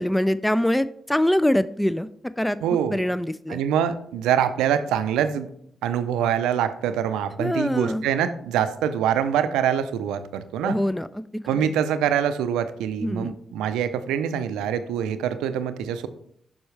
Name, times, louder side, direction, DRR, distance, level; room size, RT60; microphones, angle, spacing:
voice 1, 0.0-2.6 2.9-3.6 7.4-8.0 10.6-11.2 11.5-11.7 13.0-13.3, left 1 dB, 10° left, 15 dB, 0.3 m, -24 dB
voice 2, 2.6-3.0 3.5-5.5 5.8-10.8 11.5-16.1, right 9 dB, 85° right, 11 dB, 0.4 m, -24 dB
6.9 x 5.5 x 3.2 m, 0.67 s
supercardioid pair, 45°, 0 cm